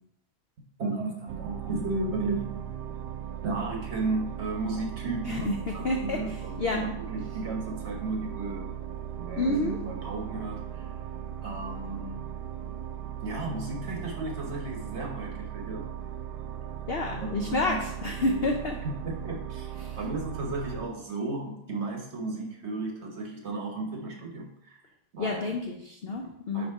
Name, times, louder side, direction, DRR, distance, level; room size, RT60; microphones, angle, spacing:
voice 1, 0.6-2.6 3.4-5.5 5.7-8.7 9.2-10.9 11.4-12.4 13.2-15.9 17.2-17.8 18.4-18.5 18.8-24.8 25.1-25.5 26.5-26.7, right 3 dB, 45° right, 0 dB, 1.1 m, -34 dB
sound 1, 1.3-20.9, right 9 dB, 75° right, 1.1 m, -38 dB
voice 2, 5.2-6.8 9.4-9.8 16.9-18.8 19.8-20.0 25.2-26.7, left 2 dB, 75° left, 2 dB, 0.5 m, -29 dB
5.0 x 4.1 x 4.8 m, 0.75 s
omnidirectional pair, 1.8 m